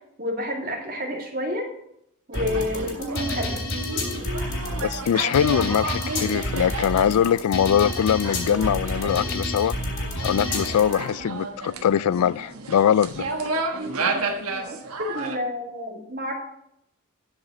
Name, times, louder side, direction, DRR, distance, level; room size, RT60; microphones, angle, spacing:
voice 1, 0.2-1.7 2.3-3.7 15.0-16.3, left 1 dB, 40° right, 2.4 m, -29 dB
sound 1, 2.3-10.9, left 1 dB, 55° left, 2.7 m, -29 dB
sound 2, 2.3-15.4, right 3 dB, 75° right, 1.4 m, -32 dB
voice 2, 4.8-9.8 10.2-13.3, left 9 dB, 85° left, 0.3 m, -22 dB
12.0 x 5.2 x 7.2 m
head